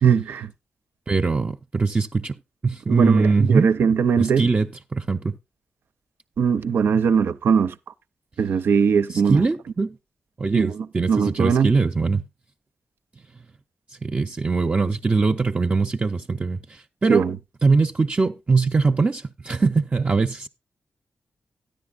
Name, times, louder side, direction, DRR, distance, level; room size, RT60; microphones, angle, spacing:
voice 1, 0.0-0.5 2.9-4.5 6.4-7.7 8.4-9.4 10.5-11.7 17.1-17.4, right 6 dB, 80° right, 0.5 m, -20 dB
voice 2, 1.1-2.3 2.6-3.7 4.2-5.4 9.1-10.0 10.4-12.2 14.0-17.2 17.6-20.5, right 4 dB, 40° right, 0.6 m, -22 dB
13.0 x 10.5 x 2.4 m
cardioid pair, 55°, 4 cm